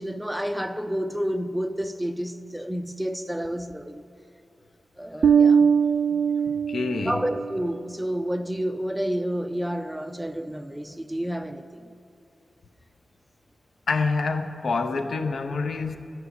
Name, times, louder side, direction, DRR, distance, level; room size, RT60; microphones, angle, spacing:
voice 1, 0.0-4.0 5.0-5.8 6.1-6.3 7.0-11.8, equal, 5° right, 0.4 m, -30 dB
Bass guitar, 5.2-7.7, right 6 dB, 80° right, 0.4 m, -21 dB
voice 2, 6.4-7.2 13.9-16.0, left 4 dB, 75° left, 0.7 m, -27 dB
14.0 x 6.0 x 9.8 m
wide cardioid pair, 165°, 0 cm